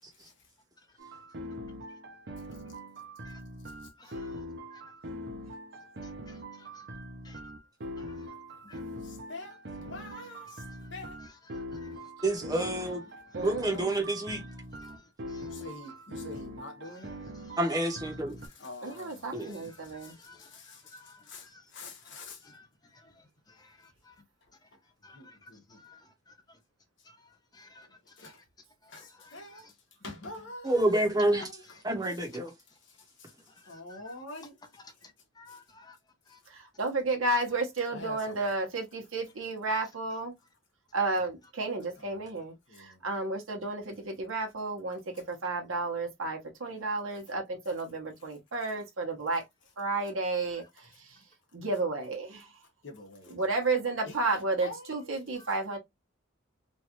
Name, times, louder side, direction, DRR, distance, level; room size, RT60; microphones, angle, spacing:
sound 1, 1.0-18.5, equal, 50° right, 0.6 m, -42 dB
voice 1, 4.0-4.4 4.7-4.8 6.3-6.4 7.2-7.4 8.0-8.2 8.7-8.8 11.5-11.9 14.8-15.0 15.3-15.5 19.9-20.5 20.9-21.6 22.4-22.6 23.6-23.7 24.1-24.2 25.0-25.3 25.8-26.0 27.5-27.9 28.9-29.6 33.7-34.1 34.8-34.9 35.4-36.0 36.3-36.4, left 3 dB, 20° left, 0.6 m, -55 dB
voice 2, 9.0-10.6 10.9-11.2 13.7-13.8 15.5-17.1 18.5-22.4 25.1-25.8 28.2-28.4 28.9-29.7 30.0-30.8 31.3-31.6 32.1-32.2 33.2-33.3 33.7-34.6 35.5-35.6 37.9-38.4 42.0-42.2 42.7-43.0 52.8-53.4 54.0-55.3, left 2 dB, 60° left, 1.1 m, -46 dB
voice 3, 12.2-13.0 13.4-14.4 17.6-18.3 19.3-19.5 30.6-31.5 31.8-32.5, right 1 dB, 20° right, 0.8 m, -28 dB
voice 4, 13.3-14.0 18.8-20.1 36.5-40.3 40.9-49.4 49.8-51.2 51.5-52.5 53.3-55.8, right 3 dB, 75° right, 1.0 m, -32 dB
3.1 x 2.4 x 2.9 m
head